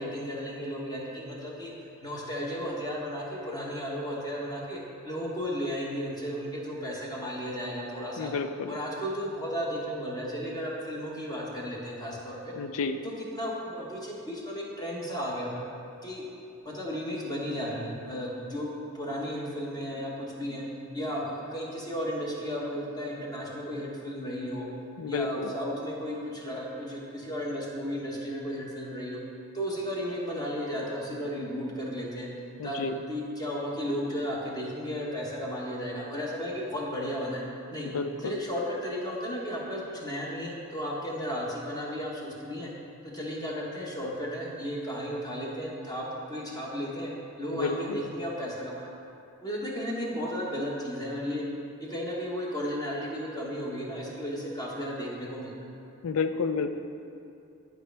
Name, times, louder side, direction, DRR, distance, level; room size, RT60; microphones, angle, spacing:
voice 1, 0.0-1.7 2.0-4.8 5.0-8.3 8.7-12.5 13.3-15.6 16.0-16.2 16.6-18.7 18.9-20.6 20.9-24.7 25.1-29.2 29.5-32.3 32.6-37.4 37.7-37.9 38.2-42.7 43.0-47.1 47.4-48.9 49.4-51.4 51.8-55.5, equal, 20° left, -4 dB, 1.2 m, -34 dB
voice 2, 8.2-8.8 12.6-13.0 25.0-25.5 32.6-33.0 37.8-38.4 47.5-48.0 56.0-56.8, left 4 dB, 65° left, 9 dB, 0.4 m, -30 dB
11.0 x 5.1 x 3.4 m, 2.6 s
head